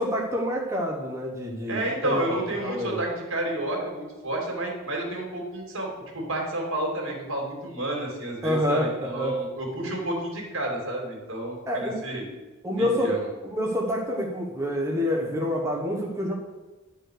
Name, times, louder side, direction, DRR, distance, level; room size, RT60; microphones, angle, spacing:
voice 1, 0.0-3.0 8.4-8.9 9.1-9.4 11.7-12.0 12.6-13.2 13.4-16.3, equal, 15° right, -1 dB, 1.0 m, -27 dB
voice 2, 1.7-5.9 6.1-12.3 12.7-13.2, right 1 dB, 70° right, 0 dB, 2.7 m, -30 dB
11.0 x 4.6 x 6.5 m, 1.2 s
head